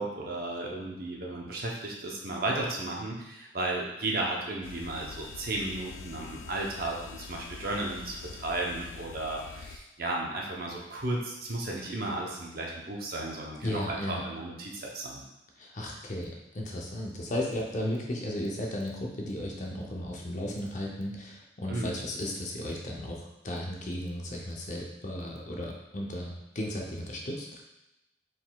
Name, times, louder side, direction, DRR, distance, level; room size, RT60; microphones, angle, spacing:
voice 1, 0.0-15.2 21.7-22.0, right 2 dB, 50° right, -2 dB, 0.7 m, -34 dB
sound 1, 4.6-9.8, left 5 dB, 85° left, 0.3 m, -45 dB
voice 2, 13.6-14.2 15.6-27.6, left 1 dB, 40° left, -1 dB, 0.6 m, -35 dB
4.6 x 3.8 x 2.3 m, 0.93 s
head